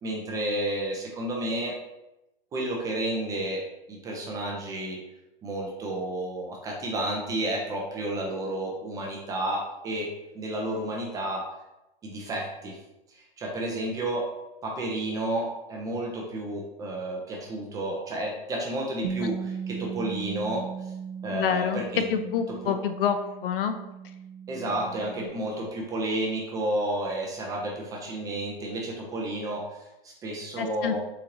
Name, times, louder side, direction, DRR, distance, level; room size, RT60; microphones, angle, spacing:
voice 1, 0.0-1.7 2.5-3.6 3.9-5.0 5.4-10.1 10.3-11.4 12.0-12.8 13.1-14.3 14.6-20.6 21.2-22.0 22.6-22.7 24.5-31.0, right 1 dB, 15° right, -1 dB, 0.3 m, -31 dB
Bass guitar, 19.0-25.3, right 6 dB, 85° right, 0.6 m, -37 dB
voice 2, 21.3-21.8 22.1-23.2 23.4-23.8 30.6-31.0, left 8 dB, 70° left, 8 dB, 0.5 m, -27 dB
3.8 x 2.7 x 2.9 m, 0.94 s
hypercardioid pair, 130°, 29 cm